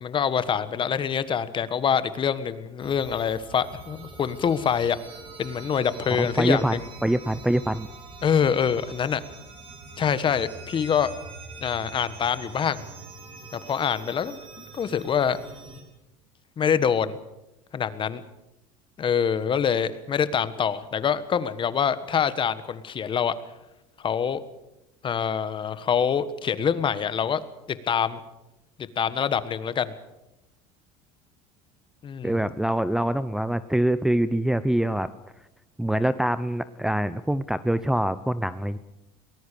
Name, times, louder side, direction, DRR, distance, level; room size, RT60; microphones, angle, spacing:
voice 1, 0.0-5.0 5.4-6.8 8.2-9.2 10.0-11.1 11.6-12.8 13.5-15.4 16.6-17.2 17.7-18.2 19.0-23.3 24.0-24.4 25.0-27.4 27.7-28.2 28.8-29.9 32.0-32.4, left 7 dB, 35° left, 14 dB, 1.5 m, -25 dB
sound 1, 2.8-15.8, right 3 dB, 35° right, 6.2 m, -44 dB
voice 2, 6.2-6.7 7.0-7.9 32.2-35.1 35.8-38.8, right 1 dB, 5° right, 12 dB, 0.7 m, -24 dB
23.0 x 19.5 x 6.9 m, 0.94 s
supercardioid pair, 110°, 15 cm